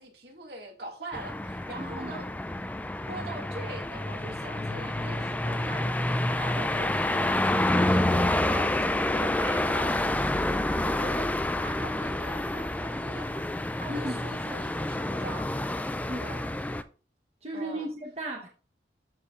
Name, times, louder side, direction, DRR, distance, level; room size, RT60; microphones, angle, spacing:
voice 1, 0.0-2.3 3.1-8.7 9.1-10.0 10.8-11.3 11.6-13.5 13.8-15.5 17.5-17.9, right 2 dB, 60° right, 2.2 m, -42 dB
sound 1, 1.1-16.8, left 1 dB, 10° left, 0.3 m, -28 dB
voice 2, 1.8-2.2 13.9-14.3 16.1-16.5 17.4-18.5, right 1 dB, 35° right, 1.1 m, -36 dB
13.5 x 5.0 x 2.5 m
head